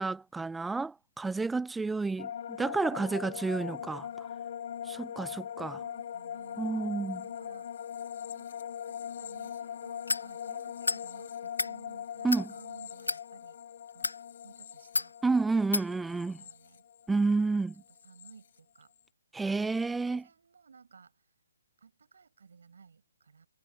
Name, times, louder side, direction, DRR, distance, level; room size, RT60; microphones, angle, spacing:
voice 1, 0.0-4.1 4.9-5.8 6.6-7.2 12.2-12.5 15.2-16.4 17.1-17.7 19.3-20.2, right 3 dB, 5° right, 0.6 m, -30 dB
sound 1, 2.2-17.4 17.7-18.3, left 9 dB, 45° left, 7.1 m, -41 dB
voice 2, 5.7-8.1 8.3-8.5 8.9-13.6 13.9-14.1 14.4-15.1 16.4-16.8 17.4-17.6 18.0-18.9 19.5-21.2 21.8-23.5, right 5 dB, 60° right, 6.3 m, -56 dB
sound 2, 10.1-10.3 10.8-11.0 11.4-11.7 12.3-12.5 13.0-13.2 13.9-14.2 14.9-15.1 15.7-15.9, left 3 dB, 80° left, 0.4 m, -30 dB
figure-of-eight pair, 140°, 0 cm